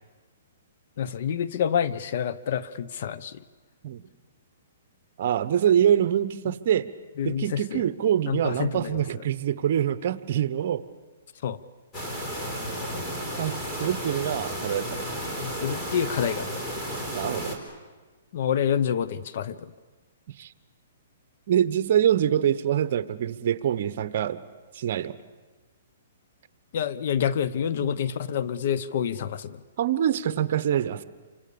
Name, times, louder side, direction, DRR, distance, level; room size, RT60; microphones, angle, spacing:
voice 1, 1.0-3.4 7.2-7.8 8.3-9.0 11.4-11.6 15.4-16.5 18.3-19.7 26.7-29.6, left 8 dB, 55° left, 14 dB, 1.0 m, -27 dB
voice 2, 5.2-6.9 7.2-10.8 13.4-15.3 17.1-17.6 20.3-20.5 21.5-24.4 24.7-25.2 27.8-27.9 29.8-31.0, right 10 dB, 50° right, 14 dB, 1.1 m, -25 dB
sound 1, 11.9-17.6, equal, 15° left, 4.2 m, -33 dB
28.5 x 25.5 x 7.1 m, 1.3 s
hypercardioid pair, 155°, 0 cm